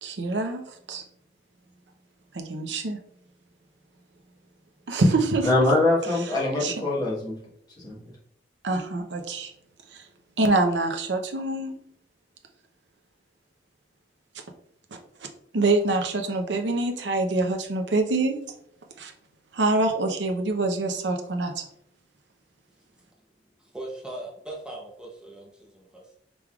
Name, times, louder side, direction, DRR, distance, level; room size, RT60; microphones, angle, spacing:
voice 1, 0.0-1.0 2.3-3.0 4.9-5.5 6.6-6.7 8.6-9.5 9.9-10.0 10.4-11.8 15.5-18.4 19.0-19.1 19.5-21.6, right 2 dB, 85° right, 4 dB, 0.7 m, -25 dB
voice 2, 5.4-7.4 7.8-8.0, left 2 dB, 25° left, -5 dB, 1.4 m, -23 dB
voice 3, 23.6-26.1, right 1 dB, 5° right, -2 dB, 0.7 m, -40 dB
5.2 x 3.3 x 2.3 m, 0.69 s
head